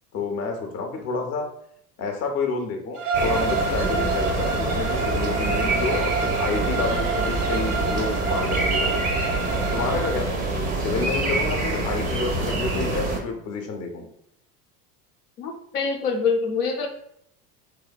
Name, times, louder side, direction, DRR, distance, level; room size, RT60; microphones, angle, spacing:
voice 1, 0.1-1.5 2.0-9.0 9.7-14.1, left 4 dB, 35° left, 4 dB, 0.5 m, -29 dB
Bowed string instrument, 3.0-10.1, right 4 dB, 80° right, 0.5 m, -28 dB
sound 1, 3.1-13.2, right 2 dB, 20° right, 0.4 m, -26 dB
voice 2, 15.4-16.9, left 5 dB, 85° left, 2 dB, 0.6 m, -25 dB
2.6 x 2.1 x 2.2 m, 0.72 s
hypercardioid pair, 80°, 45 cm